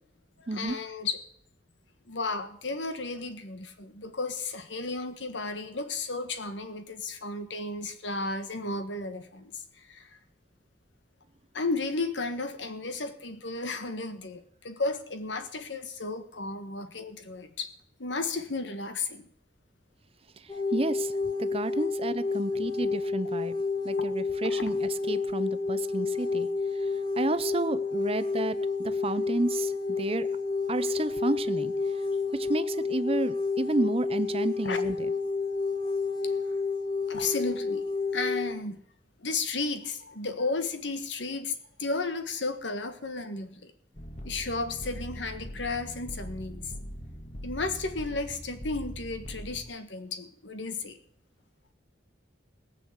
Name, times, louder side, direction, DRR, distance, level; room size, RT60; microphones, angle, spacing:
voice 1, 0.5-1.2 2.1-9.6 9.9-10.1 11.5-17.7 18.0-19.3 24.5-24.6 34.6-34.8 35.8-35.9 37.1-37.8 38.1-38.8 39.2-43.7 44.2-46.6 47.4-51.0, left 3 dB, 90° left, 9 dB, 1.5 m, -33 dB
sound 1, 20.5-38.5, left 4 dB, 25° left, 1.3 m, -30 dB
voice 2, 20.7-21.1 21.4-23.6 23.8-26.5 27.2-30.3 30.7-31.7 32.3-35.0, right 2 dB, 35° right, 13 dB, 0.7 m, -31 dB
sound 2, 43.9-49.6, equal, 40° left, 1.8 m, -41 dB
18.5 x 6.3 x 8.1 m, 0.68 s
head